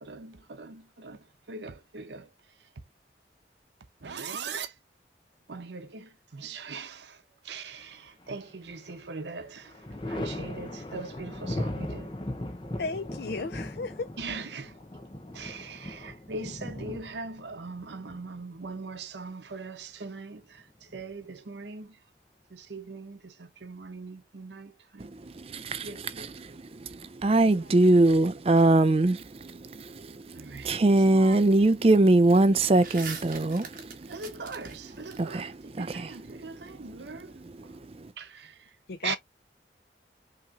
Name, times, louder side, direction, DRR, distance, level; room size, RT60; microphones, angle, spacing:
voice 1, 0.0-2.3 4.0-4.7 5.5-12.1 14.2-14.8 15.3-22.0 22.5-25.1 25.8-26.3 30.3-30.8 34.1-37.4 38.2-38.6 39.0-39.2, right 4 dB, 85° right, 0.7 m, -41 dB
Thunder, 8.2-9.0 9.3-18.9 20.4-21.3, left 1 dB, 25° left, 0.7 m, -38 dB
voice 2, 12.8-14.1 38.9-39.2, left 3 dB, 70° left, 0.5 m, -34 dB
voice 3, 25.4-25.9 26.2-34.1 35.1-36.4 37.4-38.1, right 2 dB, 35° right, 0.4 m, -23 dB
sound 1, 26.9-28.2 30.4-30.5 30.9-31.7 32.0-35.2, right 4 dB, 50° right, 1.4 m, -44 dB
5.7 x 3.0 x 2.4 m
head